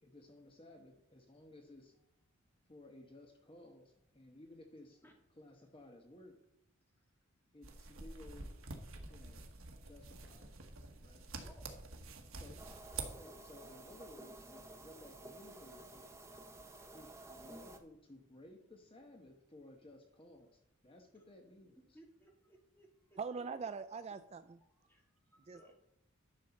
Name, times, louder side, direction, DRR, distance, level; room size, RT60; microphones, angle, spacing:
voice 1, 0.0-2.0 2.7-5.0 5.4-6.4 7.5-8.5 9.1-9.5 9.8-10.5 11.0-11.3 12.3-12.6 13.0-16.3 16.9-21.8, left 1 dB, 25° left, 3 dB, 1.1 m, -57 dB
sound 1, 7.6-13.1, right 3 dB, 75° right, 1.4 m, -48 dB
voice 2, 11.4-11.8 21.4-21.5 21.9-23.2 24.6-25.7, right 1 dB, 10° left, 0 dB, 2.1 m, -63 dB
sound 2, 12.6-17.8, right 2 dB, 15° right, 0.8 m, -53 dB
voice 3, 23.2-24.6 25.5-25.7, right 5 dB, 30° right, 11 dB, 0.3 m, -42 dB
11.0 x 6.4 x 4.2 m, 0.80 s
head